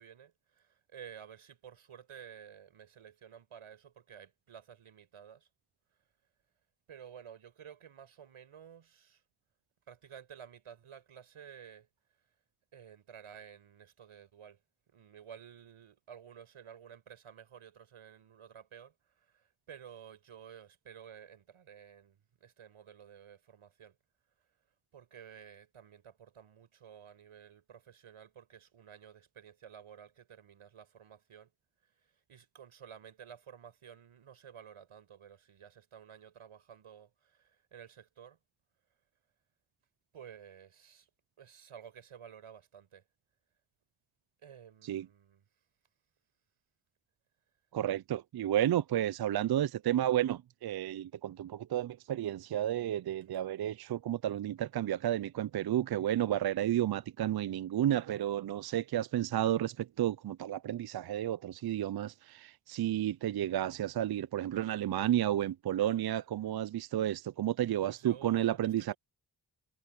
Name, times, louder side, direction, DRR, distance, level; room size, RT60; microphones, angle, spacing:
voice 1, 0.0-5.5 6.9-9.2 9.9-11.9 12.7-14.6 14.9-24.0 24.9-31.5 32.0-38.4 40.1-41.1 41.4-43.0 44.4-45.4 53.3-53.4 67.8-69.0, right 8 dB, 85° right, 6.7 m, -53 dB
voice 2, 47.7-68.9, right 12 dB, 50° right, 0.5 m, -32 dB
cardioid pair, 50°, 49 cm